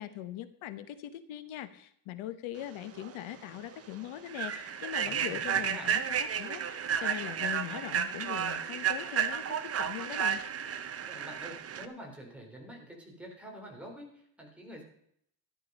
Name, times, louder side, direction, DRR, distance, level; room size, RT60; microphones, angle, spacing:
voice 1, 0.0-10.4, left 12 dB, 80° left, 11 dB, 1.2 m, -41 dB
Human voice / Train, 3.0-3.1 3.6-3.7 4.3-11.8, right 8 dB, 30° right, 0.8 m, -32 dB
voice 2, 5.0-5.9 11.0-14.8, equal, 5° right, -1 dB, 3.3 m, -47 dB
13.5 x 11.0 x 5.3 m, 0.69 s
cardioid pair, 175°, 47 cm